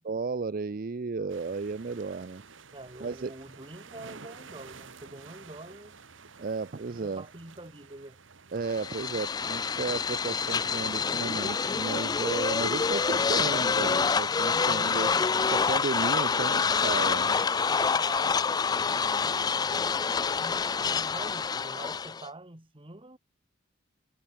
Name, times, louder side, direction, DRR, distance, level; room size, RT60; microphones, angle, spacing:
voice 1, 0.0-2.4 3.0-3.3 6.4-7.3 8.5-15.1 15.5-17.4, right 4 dB, 45° right, 0.5 m, -34 dB
sound 1, 1.3-17.8, right 5 dB, 75° right, 1.7 m, -51 dB
voice 2, 2.7-6.0 6.9-8.2 14.5-15.3 17.6-20.0 20.3-23.2, right 2 dB, 25° right, 2.5 m, -46 dB
sound 2, 8.7-22.3, left 5 dB, 20° left, 0.3 m, -27 dB
head